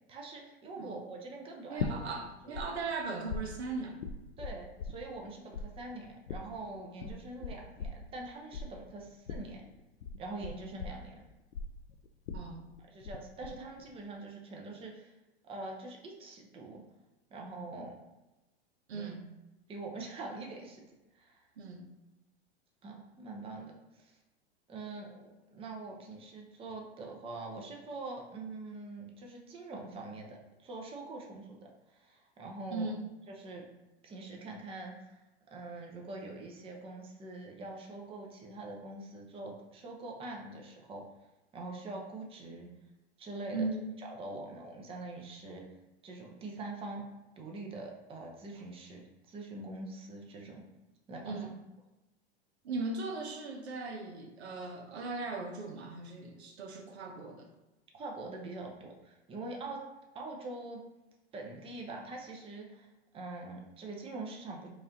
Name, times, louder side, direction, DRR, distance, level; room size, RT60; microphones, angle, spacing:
voice 1, 0.1-2.1 2.4-2.6 4.4-9.6 10.2-11.2 12.9-15.1 15.4-16.8 17.3-17.9 18.9-19.2 19.7-20.9 21.1-21.5 22.8-24.2 24.7-32.9 33.3-33.6 34.0-35.2 35.5-41.0 41.5-42.7 43.2-43.7 44.0-45.6 46.0-47.0 47.4-50.6 51.1-51.5 57.9-59.8 60.1-60.8 61.3-62.9 63.1-64.7, right 2 dB, 15° right, 0 dB, 0.6 m, -44 dB
voice 2, 1.7-4.0 12.3-12.7 18.9-19.3 21.6-21.9 32.7-33.0 43.5-43.8 51.2-51.5 52.6-57.5, right 3 dB, 80° right, 4 dB, 0.8 m, -38 dB
sound 1, 1.8-2.7 2.9-5.3 5.5-13.2 13.4-14.0, left 5 dB, 90° left, 0.5 m, -39 dB
4.7 x 2.5 x 2.8 m, 1.0 s
hypercardioid pair, 110°, 33 cm